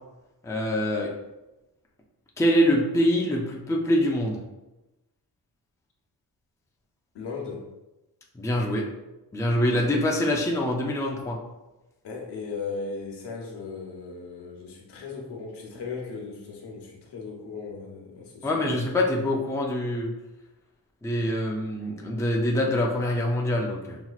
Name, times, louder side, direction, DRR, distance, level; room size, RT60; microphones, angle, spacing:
voice 1, 0.4-1.1 2.4-4.4 8.4-8.9 9.3-11.4 18.4-20.1 21.0-24.0, left 1 dB, 10° left, -1 dB, 0.5 m, -24 dB
voice 2, 7.1-7.7 12.0-18.8, left 4 dB, 80° left, -2 dB, 1.1 m, -37 dB
5.6 x 2.9 x 2.4 m, 1.0 s
wide cardioid pair, 140°, 39 cm